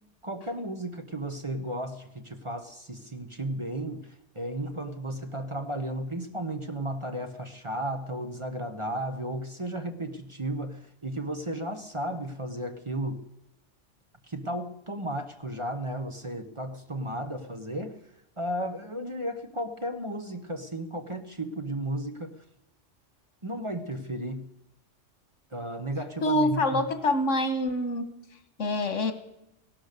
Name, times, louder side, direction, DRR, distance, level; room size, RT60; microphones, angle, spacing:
voice 1, 0.2-13.2 14.2-18.0 18.4-22.4 23.4-24.5 25.5-26.9, right 1 dB, 25° right, 7 dB, 1.0 m, -34 dB
voice 2, 26.2-28.1 28.6-29.1, left 1 dB, 85° left, 9 dB, 1.8 m, -25 dB
17.0 x 12.0 x 6.7 m, 0.86 s
omnidirectional pair, 1.3 m